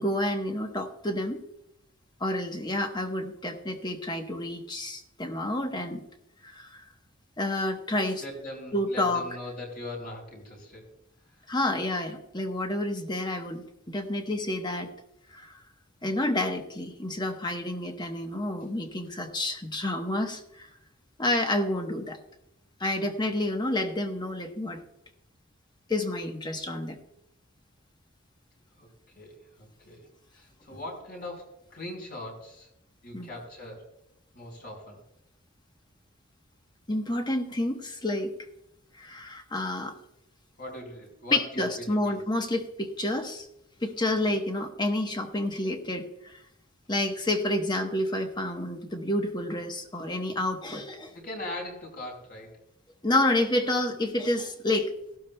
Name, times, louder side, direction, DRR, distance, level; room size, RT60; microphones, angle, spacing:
voice 1, 0.0-1.4 2.2-6.0 6.5-6.8 7.4-8.2 8.7-9.2 11.5-14.9 15.3-15.5 16.0-20.7 21.2-22.2 22.8-24.8 25.9-27.0 33.1-33.3 36.9-38.3 39.0-39.9 41.3-43.5 43.8-46.4 46.9-51.1 53.0-54.9, left 1 dB, 20° left, 5 dB, 1.0 m, -29 dB
voice 2, 8.2-10.9 11.3-11.4 28.8-32.7 33.0-33.9 34.3-35.0 40.6-41.4 41.8-42.2 51.1-52.6, left 1 dB, 45° left, 1 dB, 4.2 m, -41 dB
15.5 x 12.5 x 2.2 m, 0.82 s
head